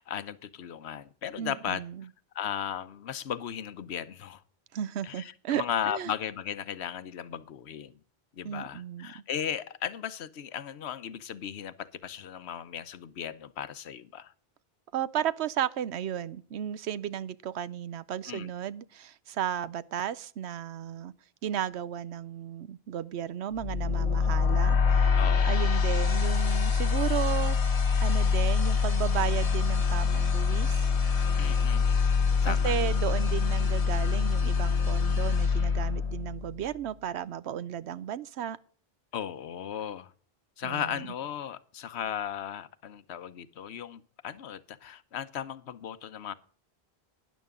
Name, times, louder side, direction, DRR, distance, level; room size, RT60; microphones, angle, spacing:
voice 1, 0.0-1.8 2.3-4.4 5.0-7.9 8.3-14.3 18.2-18.5 25.2-25.7 31.4-32.0 32.4-32.8 39.1-40.1 40.6-46.3, left 9 dB, 80° left, 1.0 m, -36 dB
voice 2, 1.4-2.1 4.7-6.1 8.4-9.2 14.9-21.1 21.4-25.2 25.4-27.6 28.0-30.9 32.4-38.6 40.6-41.1, right 10 dB, 85° right, 0.9 m, -34 dB
sound 1, 23.6-36.6, left 5 dB, 35° left, 0.9 m, -25 dB
12.5 x 10.5 x 3.7 m
omnidirectional pair, 1.1 m